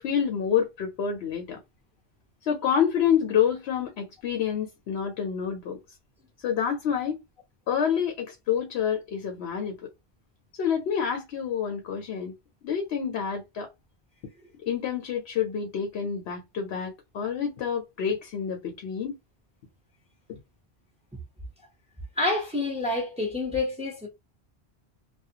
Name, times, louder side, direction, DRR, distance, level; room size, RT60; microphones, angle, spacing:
voice 1, 0.0-1.6 2.4-5.8 6.4-7.2 7.7-9.8 10.6-12.3 12.6-13.7 14.7-19.2 20.3-20.4, left 8 dB, 75° left, 0.9 m, -28 dB
voice 2, 22.2-24.1, left 2 dB, 5° right, 0.9 m, -28 dB
2.4 x 2.2 x 2.7 m
omnidirectional pair, 1.1 m